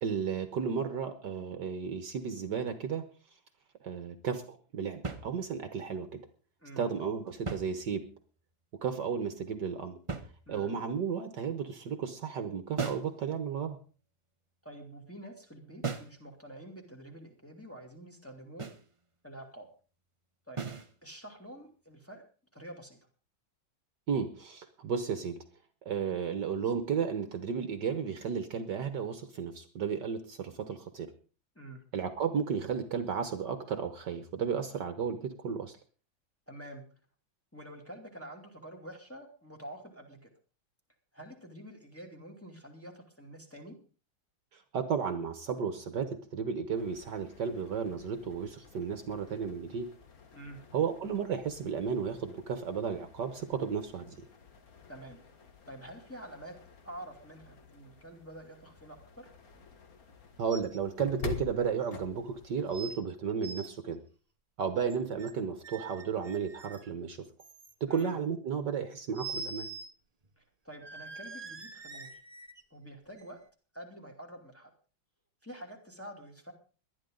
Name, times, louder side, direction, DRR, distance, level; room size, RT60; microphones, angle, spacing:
voice 1, 0.0-3.0 3.8-6.2 6.8-8.1 8.8-10.0 10.5-13.8 24.1-25.4 25.8-31.1 31.9-35.8 44.5-49.9 50.7-54.2 60.4-64.0 64.6-67.2 67.8-69.7, right 6 dB, 60° right, 9 dB, 1.6 m, -33 dB
sound 1, 5.0-5.8 7.3-8.3 10.1-10.9 12.8-13.2 15.8-16.2 18.6-18.9 20.6-20.9, right 4 dB, 40° right, 0.4 m, -38 dB
voice 2, 14.6-18.7 19.2-19.7 20.5-20.6 21.0-22.2 22.5-23.0 31.6-31.8 36.5-36.8 37.5-40.3 41.1-43.8 50.3-50.6 54.9-55.2 55.7-56.5 56.8-59.3 67.9-68.2 70.4-72.2 72.7-73.4 73.7-74.7 75.4-76.5, right 1 dB, 5° left, 0 dB, 2.5 m, -47 dB
sound 2, 46.7-63.0, left 6 dB, 45° left, 1.9 m, -49 dB
sound 3, 60.5-60.8 61.1-61.2 61.9-62.0 62.7-63.0 63.3-63.7 64.8-65.3 65.6-66.9 67.4-68.0 69.1-69.9 70.2-70.3 70.8-72.6 73.2-73.3, right 4 dB, 25° right, 1.0 m, -44 dB
19.0 x 11.5 x 3.9 m, 0.37 s
omnidirectional pair, 2.2 m